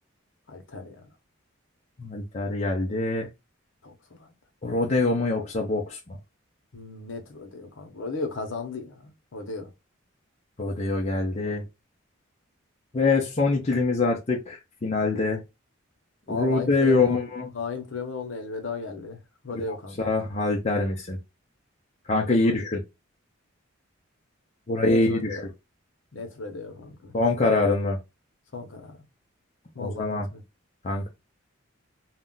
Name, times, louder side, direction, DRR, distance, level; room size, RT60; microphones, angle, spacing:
voice 1, 0.5-1.1 3.8-4.3 6.7-9.7 16.3-20.3 22.4-22.6 24.8-25.5 26.1-27.1 28.5-29.0 29.7-30.4, left 3 dB, 65° left, 0.8 m, -36 dB
voice 2, 2.0-3.3 4.6-6.2 10.6-11.6 12.9-15.4 16.3-17.5 20.0-21.2 22.1-22.8 24.7-25.4 27.1-28.0 29.8-30.3 30.8-31.1, left 3 dB, 35° left, 0.5 m, -24 dB
2.4 x 2.1 x 3.7 m
head